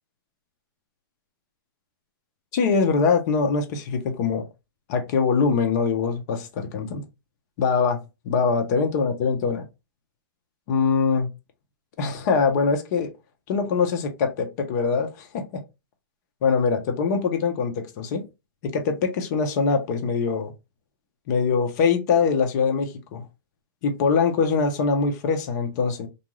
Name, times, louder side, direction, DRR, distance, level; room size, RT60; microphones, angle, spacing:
voice 1, 2.5-4.5 4.9-7.0 7.6-8.0 8.3-9.6 10.7-11.3 12.0-13.1 13.5-15.6 16.4-18.2 18.6-20.5 21.3-23.2 23.8-26.1, left 5 dB, 45° left, 0.7 m, -23 dB
2.5 x 2.3 x 3.0 m
hypercardioid pair, 150°, 12 cm